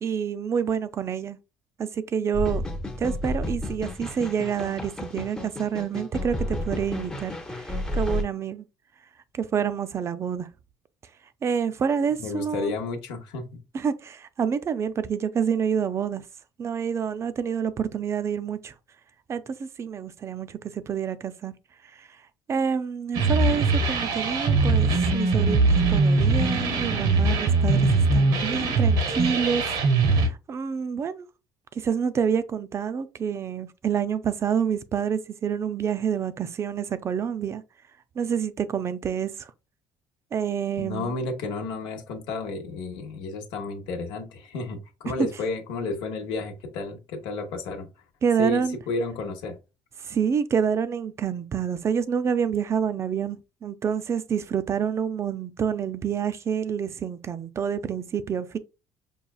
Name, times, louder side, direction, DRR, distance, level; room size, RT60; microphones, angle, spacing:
voice 1, 0.0-1.4 1.8-2.6 3.0-8.6 9.4-10.5 11.4-12.7 13.7-16.2 16.6-18.7 19.3-21.5 22.0-22.1 22.5-29.6 30.2-31.3 31.8-37.6 38.2-39.5 40.3-41.1 48.2-48.8 50.0-58.6, right 7 dB, 35° right, 0.4 m, -28 dB
sound 1, 2.3-8.2, left 1 dB, 10° left, 0.6 m, -31 dB
voice 2, 12.2-13.6 40.8-47.9 48.4-49.5, left 3 dB, 80° left, 0.9 m, -32 dB
sound 2, 23.1-30.3, right 3 dB, 80° right, 1.1 m, -21 dB
5.5 x 2.3 x 2.3 m
cardioid pair, 105°, 8 cm